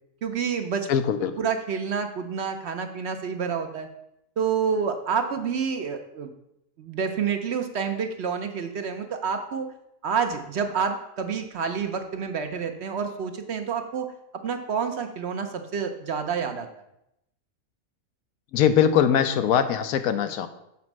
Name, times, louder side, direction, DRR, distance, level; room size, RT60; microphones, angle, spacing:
voice 1, 0.2-0.9 1.4-3.9 4.4-6.3 6.8-9.7 10.0-14.1 14.4-16.7, right 6 dB, 60° right, 6 dB, 0.8 m, -28 dB
voice 2, 0.9-1.3 18.5-20.5, left 8 dB, 85° left, 9 dB, 1.1 m, -21 dB
7.3 x 4.3 x 6.0 m, 0.81 s
omnidirectional pair, 1.5 m